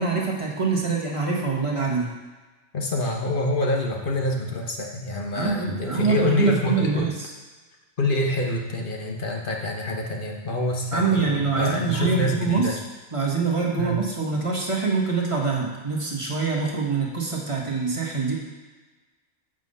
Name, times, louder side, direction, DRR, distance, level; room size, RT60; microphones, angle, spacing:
voice 1, 0.0-2.1 5.3-7.3 10.9-12.8 13.1-18.3, right 4 dB, 25° right, -2 dB, 1.4 m, -24 dB
voice 2, 2.7-7.1 8.0-12.8 13.8-14.0, left 1 dB, 45° left, 1 dB, 1.1 m, -26 dB
8.3 x 5.1 x 5.5 m, 1.3 s
omnidirectional pair, 1.4 m